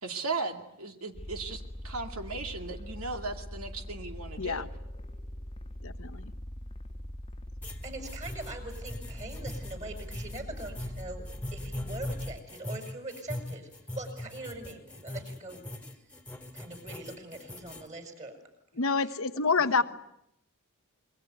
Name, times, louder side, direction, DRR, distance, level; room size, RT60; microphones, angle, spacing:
voice 1, 0.0-4.7, right 3 dB, 70° right, 5 dB, 2.4 m, -37 dB
sound 1, 1.1-12.4, left 1 dB, 25° left, 1.4 m, -42 dB
voice 2, 5.8-6.3 18.8-19.8, left 4 dB, 65° left, 11 dB, 1.1 m, -27 dB
sound 2, 7.6-17.9, left 1 dB, 5° left, 2.1 m, -40 dB
voice 3, 7.8-11.2 11.5-13.7 13.9-15.6 16.5-18.4 19.0-19.2 19.5-19.8, right 2 dB, 35° right, 6 dB, 6.4 m, -42 dB
26.0 x 23.0 x 9.4 m, 0.77 s
head